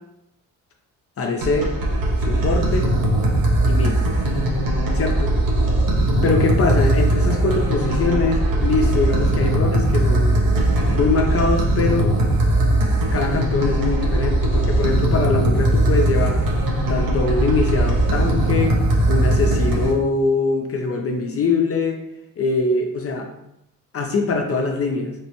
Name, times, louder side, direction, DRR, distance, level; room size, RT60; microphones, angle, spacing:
voice 1, 1.2-1.7 2.2-2.9 3.7-4.0 4.9-5.3 6.2-10.4 10.9-12.2 13.1-16.4 16.9-18.8 19.1-22.0 22.4-23.3 23.9-25.1, left 3 dB, 40° left, 2 dB, 0.5 m, -22 dB
sound 1, 1.4-19.9, right 1 dB, 70° right, 0.9 m, -19 dB
3.5 x 2.0 x 2.9 m, 0.82 s
supercardioid pair, 75°, 35 cm